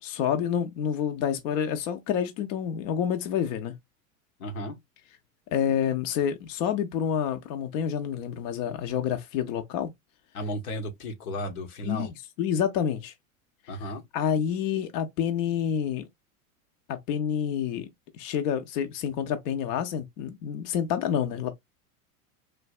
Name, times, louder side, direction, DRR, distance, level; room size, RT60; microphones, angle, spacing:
voice 1, 0.0-3.7 5.5-9.9 11.8-13.1 13.8-16.1 16.9-17.9 18.1-21.5, left 8 dB, 60° left, 0.6 m, -28 dB
voice 2, 4.4-4.8 10.3-12.1 13.7-14.0, equal, 80° left, 0.9 m, -34 dB
3.2 x 2.5 x 2.3 m
hypercardioid pair, 100°, 43 cm